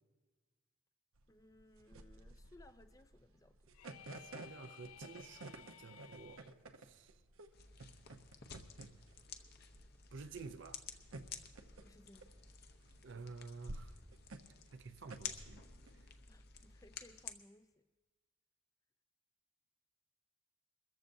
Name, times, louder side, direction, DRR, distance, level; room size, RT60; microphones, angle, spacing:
sound 1, 1.2-15.9, right 2 dB, 85° right, 0.9 m, -53 dB
voice 1, 1.3-3.7 11.8-12.3 16.3-17.8, left 1 dB, 15° left, 0.4 m, -63 dB
sound 2, 3.7-6.5, left 10 dB, 90° left, 0.4 m, -57 dB
voice 2, 4.1-6.4 6.8-7.1 10.1-10.8 13.0-13.9 14.7-15.6, right 4 dB, 60° right, 0.5 m, -51 dB
sound 3, 7.5-17.3, left 7 dB, 50° left, 0.8 m, -52 dB
23.5 x 14.0 x 2.7 m
head